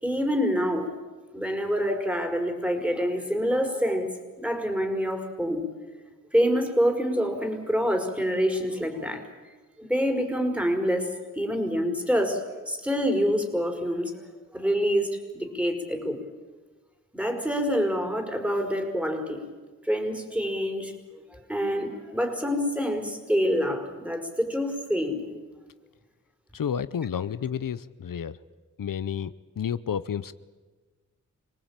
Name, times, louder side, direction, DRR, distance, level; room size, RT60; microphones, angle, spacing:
voice 1, 0.0-0.9 1.3-4.1 4.4-5.6 6.3-9.2 9.8-14.1 14.5-15.1 15.3-16.2 17.1-19.4 19.8-25.3, equal, 5° right, 4 dB, 5.0 m, -26 dB
voice 2, 26.5-28.4 28.8-30.3, left 8 dB, 90° left, 14 dB, 0.7 m, -31 dB
27.0 x 19.0 x 8.9 m, 1.4 s
cardioid pair, 50°, 32 cm